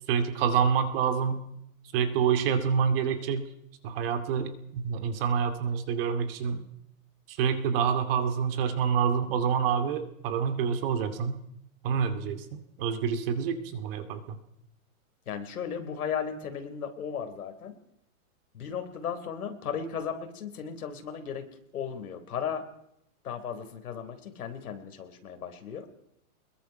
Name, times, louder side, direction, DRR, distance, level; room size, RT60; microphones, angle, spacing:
voice 1, 0.1-1.4 1.9-3.5 3.8-6.6 7.3-11.4 11.8-14.4, right 7 dB, 40° right, 8 dB, 2.5 m, -27 dB
voice 2, 15.3-17.8 18.5-21.5 21.7-22.6 23.2-25.9, left 7 dB, 80° left, 7 dB, 3.9 m, -35 dB
25.0 x 21.5 x 5.9 m, 0.77 s
hypercardioid pair, 160°, 43 cm